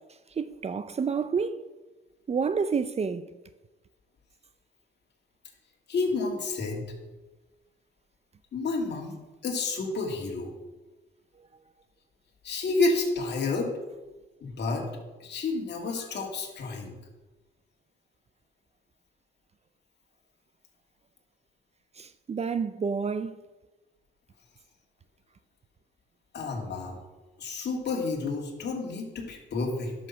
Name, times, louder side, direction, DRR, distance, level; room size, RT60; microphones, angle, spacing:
voice 1, 0.4-1.6 2.3-3.3 22.0-23.3, right 5 dB, 30° right, 0.5 m, -29 dB
voice 2, 5.9-6.9 8.5-10.5 12.4-13.7 14.4-14.9 15.2-17.0 26.3-27.0 27.4-29.9, left 3 dB, 60° left, 2.6 m, -30 dB
11.5 x 6.5 x 6.0 m
cardioid pair, 90°, 20 cm